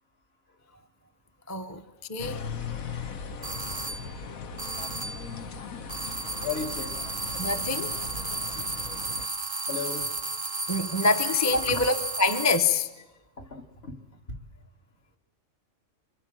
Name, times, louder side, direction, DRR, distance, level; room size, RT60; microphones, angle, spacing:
voice 1, 1.5-1.8 2.1-2.4 7.4-7.9 8.3-8.7 10.7-12.9, left 3 dB, 15° left, 0.8 m, -26 dB
sound 1, 2.2-9.3, left 5 dB, 90° left, 1.6 m, -38 dB
sound 2, 3.4-4.1 4.6-5.3 5.9-12.8, right 3 dB, 25° right, 0.7 m, -33 dB
voice 2, 6.4-7.2 9.7-10.2 11.5-11.9 13.4-14.0 14.3-14.4, left 4 dB, 50° left, 1.8 m, -35 dB
26.5 x 23.0 x 7.5 m
omnidirectional pair, 1.4 m